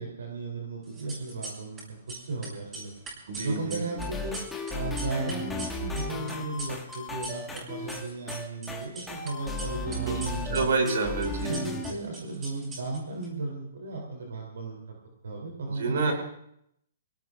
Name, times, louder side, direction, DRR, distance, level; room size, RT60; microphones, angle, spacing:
voice 1, 0.0-1.8 2.3-4.4 4.7-10.7 11.4-14.8 15.2-16.1, right 3 dB, 90° right, 0 dB, 3.4 m, -35 dB
sound 1, 0.9-1.8 2.1-7.6 7.9-9.3 9.6-13.3, right 2 dB, 20° right, 6.6 m, -41 dB
voice 2, 3.3-3.8 10.0-10.2 10.5-11.8 15.7-16.1, right 4 dB, 70° right, 3 dB, 5.1 m, -28 dB
sound 2, 4.0-11.9, left 2 dB, 5° left, 1.7 m, -35 dB
25.5 x 18.0 x 2.6 m, 0.74 s
hypercardioid pair, 155°, 0 cm